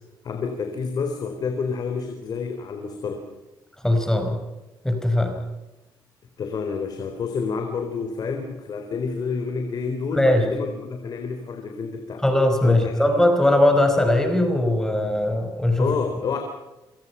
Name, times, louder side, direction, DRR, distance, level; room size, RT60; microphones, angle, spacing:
voice 1, 0.2-3.3 6.4-12.2 12.6-12.9 15.8-16.4, left 5 dB, 50° left, 5 dB, 4.0 m, -29 dB
voice 2, 3.8-4.3 4.8-5.3 10.1-10.5 12.2-15.9, left 1 dB, 5° left, 5 dB, 4.8 m, -20 dB
27.5 x 26.0 x 5.8 m, 1.0 s
cardioid pair, 125°, 8 cm